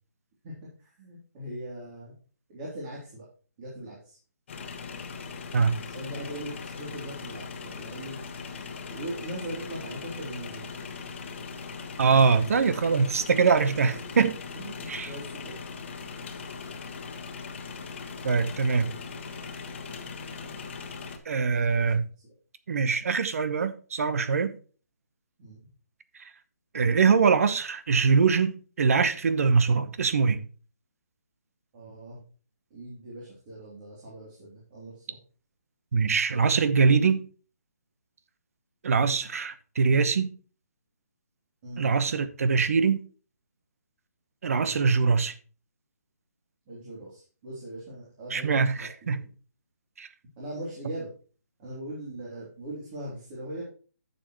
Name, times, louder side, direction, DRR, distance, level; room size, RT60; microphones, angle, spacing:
voice 1, 0.8-2.2 2.5-3.2 3.6-4.2 5.9-8.2 8.9-10.8 14.6-15.6 21.5-22.0 22.2-22.3 22.8-22.9 25.4-25.6 31.7-32.2 32.7-35.2 41.6-41.9 44.5-44.7 46.7-49.3 50.4-51.1 51.6-53.6, right 1 dB, 30° right, 3.1 m, -40 dB
sound 1, 4.5-21.2, left 5 dB, 45° left, 1.3 m, -40 dB
voice 2, 12.0-14.3 14.9-15.1 18.2-18.9 21.2-22.0 22.7-24.5 26.2-26.3 26.7-30.4 35.9-37.2 38.8-40.3 41.8-43.0 44.4-45.3 48.3-49.2 50.0-50.1, right 5 dB, 60° right, 1.0 m, -23 dB
11.0 x 7.0 x 3.0 m
hypercardioid pair, 155°, 9 cm